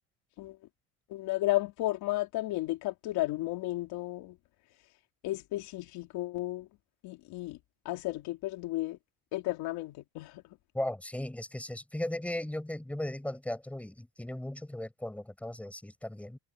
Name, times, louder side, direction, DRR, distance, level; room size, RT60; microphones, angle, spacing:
voice 1, 1.1-4.4 5.2-6.7 7.0-7.6 7.8-9.0 9.3-10.4, left 17 dB, 70° left, 3.1 m, -33 dB
voice 2, 10.7-16.4, left 1 dB, 5° left, 7.2 m, -37 dB
cardioid pair, 170°, 39 cm